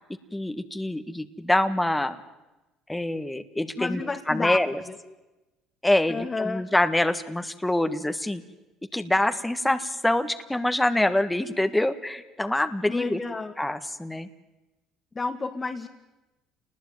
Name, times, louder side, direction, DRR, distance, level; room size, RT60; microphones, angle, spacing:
voice 1, 0.3-2.2 2.9-4.0 4.3-4.8 5.8-8.4 8.9-13.2 13.6-14.3, left 1 dB, 10° left, 9 dB, 1.6 m, -25 dB
voice 2, 3.8-4.6 4.9-5.0 6.1-6.6 12.9-13.5 15.1-15.9, left 3 dB, 25° left, 3 dB, 1.8 m, -30 dB
28.0 x 20.0 x 9.3 m, 1.1 s
supercardioid pair, 75°, 0 cm